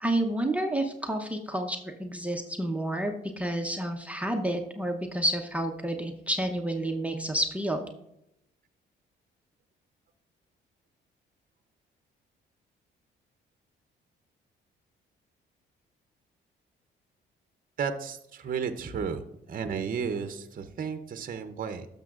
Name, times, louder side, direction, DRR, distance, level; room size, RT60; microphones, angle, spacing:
voice 1, 0.0-7.8, right 1 dB, 5° right, 3 dB, 0.8 m, -30 dB
voice 2, 17.8-21.9, right 6 dB, 45° right, 9 dB, 0.7 m, -33 dB
12.0 x 6.7 x 2.4 m, 0.81 s
cardioid pair, 90°, 20 cm